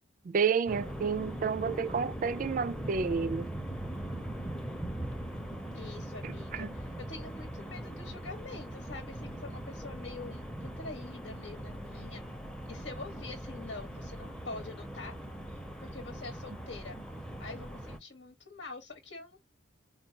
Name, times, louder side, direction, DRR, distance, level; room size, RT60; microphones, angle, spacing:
voice 1, 0.2-3.5 6.2-6.7, right 6 dB, 45° right, 0.3 m, -30 dB
sound 1, 0.7-18.0, right 1 dB, 5° left, 0.6 m, -40 dB
voice 2, 5.7-12.2 12.7-15.1 15.8-17.0 17.4-19.4, left 3 dB, 80° left, 1.2 m, -45 dB
4.5 x 2.2 x 2.8 m
head